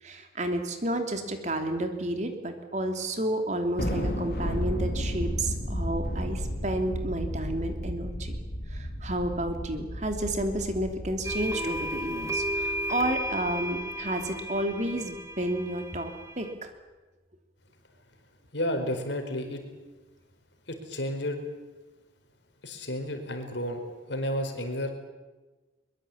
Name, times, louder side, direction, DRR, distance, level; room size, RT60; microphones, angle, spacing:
voice 1, 0.0-8.4 8.7-16.7, right 1 dB, 40° right, 6 dB, 3.0 m, -31 dB
Thunder, 3.8-14.4, equal, 50° left, 3.8 m, -34 dB
sound 1, 11.2-16.5, equal, 15° right, 2.3 m, -34 dB
voice 2, 18.5-19.6 20.7-21.4 22.6-24.9, left 1 dB, 70° left, 6 dB, 4.6 m, -32 dB
23.0 x 22.0 x 8.7 m, 1.2 s
head